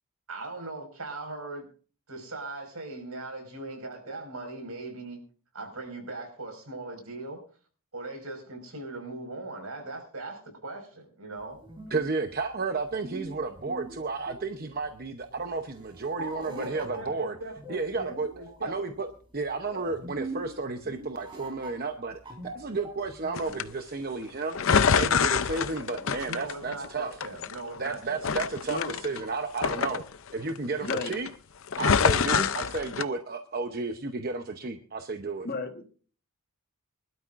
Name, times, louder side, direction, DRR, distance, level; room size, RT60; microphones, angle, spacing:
voice 1, 0.3-1.7 2.1-5.2 5.5-7.4 7.9-11.6 16.2-18.9 26.3-28.4, right 2 dB, 80° right, 5.3 m, -39 dB
sound 1, 11.4-23.9, right 2 dB, 20° right, 3.8 m, -44 dB
voice 2, 11.9-17.4 17.7-18.3 18.6-19.1 19.3-24.6 24.9-27.1 27.8-30.0 30.3-31.3 31.8-35.5, right 3 dB, 45° right, 0.8 m, -32 dB
sound 2, 23.4-23.6 24.6-26.9 27.2-27.9 28.2-30.6 30.8-31.3 31.7-33.0, left 6 dB, 60° left, 0.6 m, -26 dB
voice 3, 30.8-31.2 32.4-32.5 35.4-35.9, left 3 dB, 45° left, 1.5 m, -33 dB
24.5 x 12.5 x 2.6 m
head